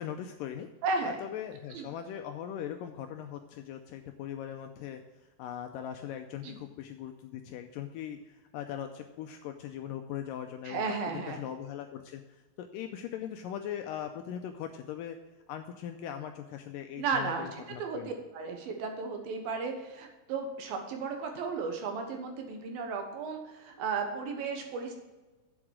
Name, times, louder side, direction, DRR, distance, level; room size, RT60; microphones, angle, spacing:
voice 1, 0.0-0.7 1.0-5.0 5.4-15.2 15.5-18.1, left 10 dB, 85° left, 6 dB, 2.0 m, -40 dB
voice 2, 0.8-1.2 1.7-1.9 6.4-6.6 10.7-11.4 16.9-25.0, right 4 dB, 75° right, 4 dB, 2.9 m, -34 dB
7.9 x 7.4 x 6.1 m, 1.2 s
omnidirectional pair, 4.3 m